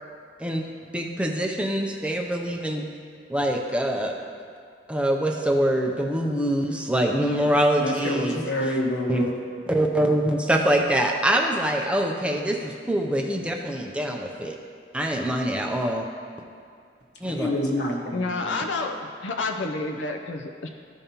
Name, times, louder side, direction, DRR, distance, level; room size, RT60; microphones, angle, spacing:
voice 1, 0.9-2.9 3.3-4.2 4.9-8.4 9.1-9.3 9.7-14.6 14.9-16.1 17.2-17.5, right 1 dB, 5° right, 1 dB, 0.5 m, -24 dB
voice 2, 7.8-9.4 17.2-18.6, left 1 dB, 65° left, 0 dB, 1.2 m, -27 dB
voice 3, 18.1-20.7, left 3 dB, 85° left, 4 dB, 0.5 m, -29 dB
14.0 x 5.2 x 2.9 m, 2.3 s
head